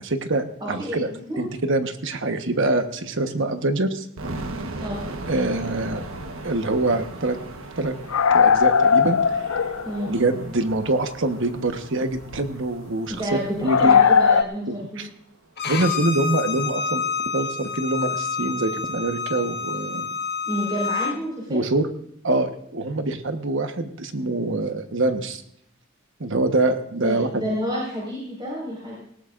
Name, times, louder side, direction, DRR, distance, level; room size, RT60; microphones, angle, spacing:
voice 1, 0.0-1.1 1.4-4.0 5.3-6.0 6.4-7.4 7.8-7.9 8.3-9.5 10.0-14.0 14.7-15.1 15.6-17.0 17.3-20.1 21.5-21.9 22.2-25.4 26.2-27.4, right 2 dB, 65° right, 7 dB, 1.3 m, -25 dB
voice 2, 0.6-1.4 4.8-5.0 9.8-10.1 13.1-15.0 20.4-21.6 27.0-29.0, equal, 25° right, -5 dB, 5.0 m, -29 dB
sound 1, 4.2-15.0, right 2 dB, 80° right, 1.3 m, -38 dB
sound 2, 5.4-5.5 5.9-6.0 6.2-6.3 8.1-10.1 10.7-10.8 12.1-12.4 13.6-14.4, left 6 dB, 80° left, 0.6 m, -18 dB
Bowed string instrument, 15.6-21.1, left 5 dB, 55° left, 1.5 m, -28 dB
19.5 x 18.0 x 2.6 m, 0.70 s
head